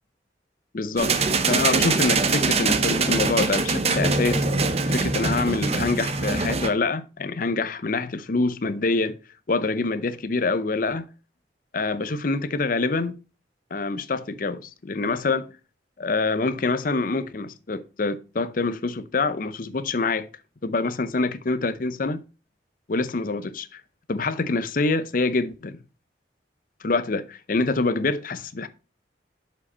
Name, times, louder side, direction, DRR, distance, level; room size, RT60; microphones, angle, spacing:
voice 1, 0.7-4.6 4.9-9.2 9.5-11.1 11.7-13.2 13.7-15.5 16.0-20.3 20.6-22.2 22.9-23.8 24.1-25.8 26.8-28.7, left 3 dB, 50° left, 0.6 m, -26 dB
sound 1, 1.0-6.7, right 4 dB, 35° right, 0.7 m, -23 dB
7.0 x 5.1 x 4.2 m
head